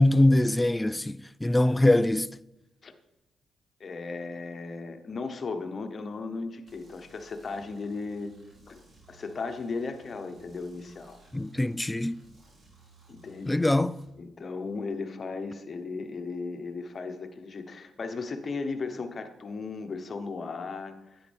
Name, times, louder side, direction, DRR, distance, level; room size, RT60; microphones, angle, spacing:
voice 1, 0.0-2.4 11.3-12.2 13.5-14.0, left 1 dB, 15° left, 0.3 m, -23 dB
voice 2, 3.8-8.3 8.7-8.8 9.1-11.2 13.1-13.5 14.2-21.2, left 4 dB, 50° left, 1.0 m, -36 dB
sound 1, 6.7-14.1, right 4 dB, 50° right, 3.1 m, -57 dB
10.0 x 7.9 x 3.5 m
supercardioid pair, 55°, 0 cm